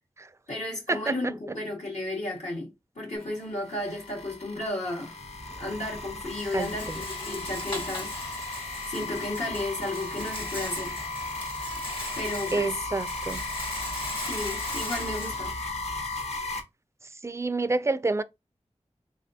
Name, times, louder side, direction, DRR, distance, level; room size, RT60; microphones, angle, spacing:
voice 1, 0.5-2.7 3.0-5.1 5.6-8.1 8.9-11.0 12.2-12.9 14.2-15.5, left 1 dB, 80° left, 1.8 m, -33 dB
sound 1, 3.2-16.6, left 3 dB, 65° left, 1.0 m, -36 dB
Rattle, 5.2-16.2, left 1 dB, 45° left, 1.5 m, -39 dB
voice 2, 12.5-13.4 17.2-18.2, right 3 dB, 25° right, 0.3 m, -27 dB
3.5 x 3.2 x 2.7 m
wide cardioid pair, 50°, 12 cm